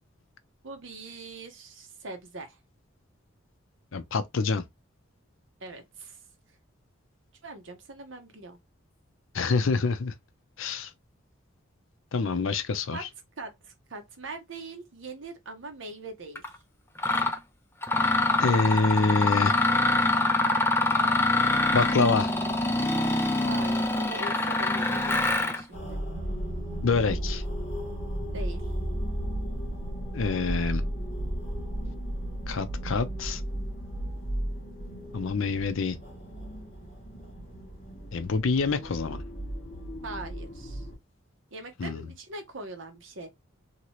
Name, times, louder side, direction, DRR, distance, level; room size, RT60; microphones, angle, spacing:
voice 1, 0.6-2.6 5.6-6.2 7.4-8.6 12.9-13.0 13.4-16.5 23.4-26.0 28.3-28.6 40.0-40.9 41.5-43.3, right 2 dB, 65° right, 0.9 m, -41 dB
voice 2, 3.9-4.6 9.3-10.1 10.6-10.9 12.1-13.1 18.4-19.5 21.7-22.3 26.8-27.4 30.1-30.9 32.5-33.4 35.1-36.0 38.1-39.2 41.8-42.1, left 4 dB, 70° left, 0.5 m, -26 dB
Mechanisms, 16.4-16.5 17.0-17.4 17.8-25.6, left 2 dB, 10° left, 0.4 m, -25 dB
sound 1, 25.7-41.0, right 1 dB, 30° left, 1.2 m, -34 dB
2.9 x 2.8 x 3.0 m
head